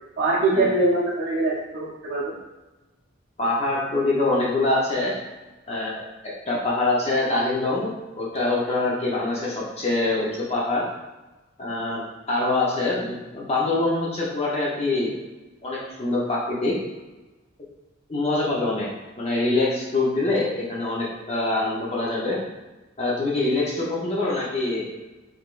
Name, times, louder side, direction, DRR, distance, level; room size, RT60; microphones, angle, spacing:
voice 1, 0.2-2.3, right 2 dB, 50° right, -8 dB, 0.6 m, -23 dB
voice 2, 3.4-5.1 5.7-6.0 6.5-10.8 11.6-15.1 15.6-16.7 18.1-18.9 19.2-22.4 23.0-24.9, left 2 dB, 30° left, -5 dB, 0.7 m, -24 dB
3.9 x 3.3 x 2.4 m, 1.1 s
head